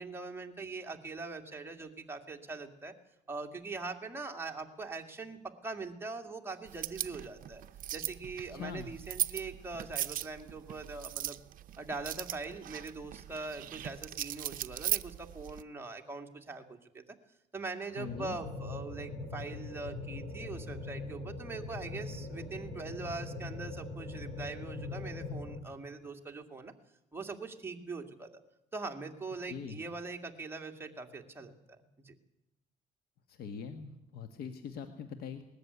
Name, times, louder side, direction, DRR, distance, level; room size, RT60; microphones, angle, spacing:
voice 1, 0.0-2.9 3.3-7.6 7.9-11.4 11.8-17.0 17.5-26.7 27.1-28.4 28.7-31.5 32.0-32.1, right 3 dB, 15° right, 3 dB, 2.2 m, -42 dB
sound 1, 6.7-15.6, right 12 dB, 55° right, 0.6 m, -39 dB
voice 2, 8.5-8.9 18.0-18.4 29.5-29.8 33.3-35.4, left 6 dB, 65° left, 9 dB, 1.5 m, -42 dB
sound 2, 18.0-25.6, left 3 dB, 35° left, 6.1 m, -41 dB
19.5 x 13.5 x 9.8 m, 0.88 s
cardioid pair, 110°, 17 cm